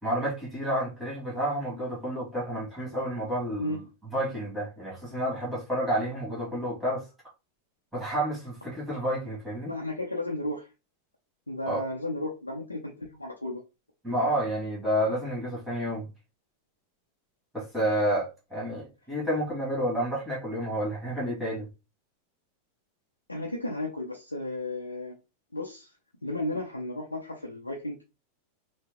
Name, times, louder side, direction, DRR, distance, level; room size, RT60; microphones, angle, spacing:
voice 1, 0.0-3.8 4.1-7.0 7.9-9.7 11.6-11.8 14.0-16.1 17.5-21.7, equal, 5° right, 2.5 m, -30 dB
voice 2, 9.7-10.7 11.5-13.6 23.3-25.2 25.5-25.9 26.2-28.0, left 1 dB, 80° left, 0.8 m, -34 dB
6.0 x 2.4 x 3.0 m
figure-of-eight pair, 90°, 0 cm